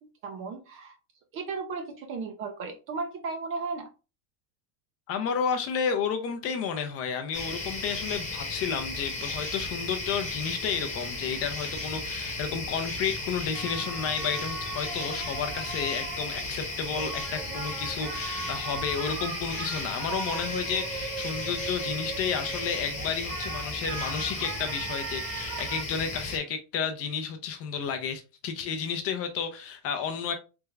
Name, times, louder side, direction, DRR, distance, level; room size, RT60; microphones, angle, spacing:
voice 1, 0.2-1.0 1.3-3.9, right 4 dB, 30° right, 0.4 m, -35 dB
voice 2, 5.1-30.3, left 6 dB, 35° left, 0.4 m, -31 dB
sound 1, 7.3-26.4, left 2 dB, 15° left, 0.9 m, -35 dB
sound 2, 13.5-25.8, right 6 dB, 65° right, 0.9 m, -39 dB
3.4 x 2.3 x 3.1 m
supercardioid pair, 140°, 46 cm